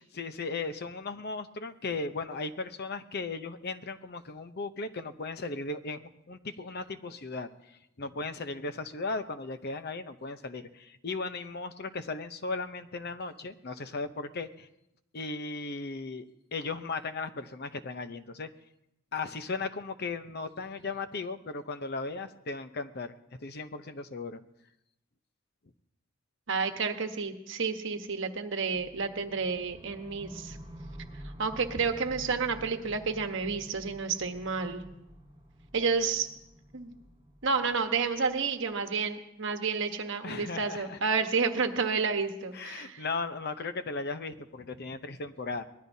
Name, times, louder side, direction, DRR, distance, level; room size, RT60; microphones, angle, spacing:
voice 1, 0.1-6.0 6.3-14.7 15.1-16.2 16.5-18.5 19.1-23.1 23.4-24.4 40.2-41.0 42.5-45.6, left 3 dB, 50° left, 10 dB, 0.7 m, -36 dB
voice 2, 26.5-30.6 31.4-34.9 35.7-36.3 36.7-36.9 37.4-43.0, right 5 dB, 60° right, 6 dB, 1.2 m, -30 dB
sound 1, 28.7-38.8, equal, 25° right, 6.3 m, -49 dB
23.5 x 19.0 x 2.8 m, 0.85 s
head